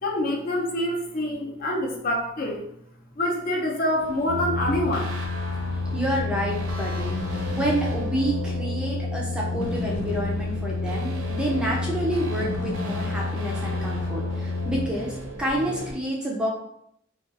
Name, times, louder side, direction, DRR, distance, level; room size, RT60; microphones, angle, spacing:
voice 1, 0.0-2.6 3.2-5.1, left 1 dB, 45° left, -1 dB, 0.6 m, -26 dB
sound 1, 4.0-15.9, right 1 dB, 80° right, 0.7 m, -37 dB
sound 2, 4.3-14.9, left 3 dB, 80° left, 0.3 m, -29 dB
voice 2, 5.9-7.1 7.5-16.5, right 1 dB, 5° right, -4 dB, 0.5 m, -28 dB
2.4 x 2.3 x 3.9 m, 0.73 s
head